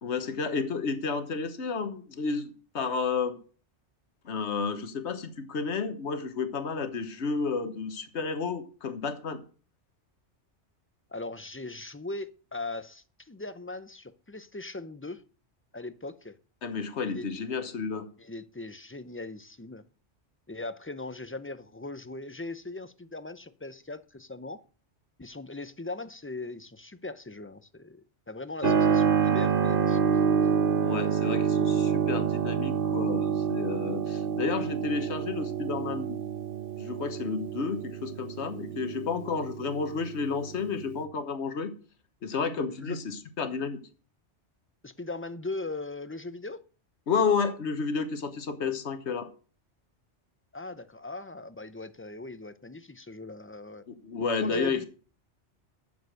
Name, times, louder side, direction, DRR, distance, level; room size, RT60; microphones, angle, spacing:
voice 1, 0.0-3.4 4.2-9.4 16.6-18.1 28.6-28.7 30.8-36.3 36.8-41.7 42.2-43.8 47.1-49.3 53.9-54.8, left 5 dB, 70° left, 1.5 m, -31 dB
voice 2, 11.1-15.2 15.7-16.3 17.0-17.3 18.2-19.8 20.5-24.6 25.2-30.0 42.8-43.0 44.8-46.6 50.5-53.8 54.4-54.8, left 2 dB, 15° left, 0.4 m, -39 dB
Keyboard (musical), 28.6-41.0, right 7 dB, 50° right, 1.1 m, -28 dB
10.5 x 7.0 x 6.4 m
omnidirectional pair, 1.2 m